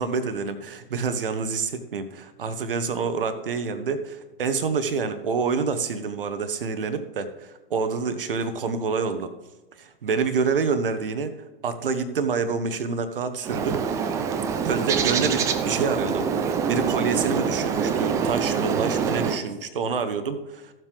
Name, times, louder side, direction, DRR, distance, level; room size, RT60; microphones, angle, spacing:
voice 1, 0.0-9.3 9.8-13.8 14.6-20.7, right 5 dB, 70° right, 10 dB, 0.9 m, -27 dB
Bird, 13.4-19.4, right 6 dB, 10° right, 0.3 m, -25 dB
14.5 x 7.5 x 3.3 m, 1.1 s
figure-of-eight pair, 105°, 29 cm